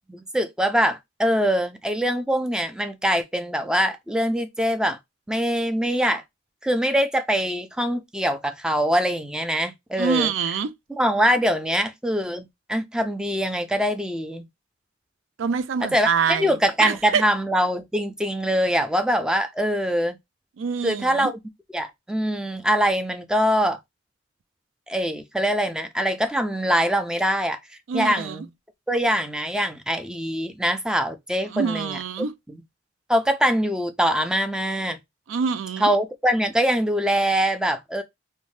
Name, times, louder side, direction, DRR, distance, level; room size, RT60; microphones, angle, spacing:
voice 1, 0.1-5.0 5.3-6.2 6.6-10.3 10.9-14.5 15.9-20.2 20.8-21.3 21.7-23.8 24.9-27.6 27.9-28.4 28.9-32.0 33.1-35.0 35.8-38.0, equal, 5° right, 0.3 m, -23 dB
voice 2, 10.0-10.7 15.4-17.2 20.6-21.3 27.9-28.4 31.5-32.3 35.3-35.9, right 6 dB, 80° right, 0.4 m, -25 dB
2.6 x 2.1 x 3.1 m
head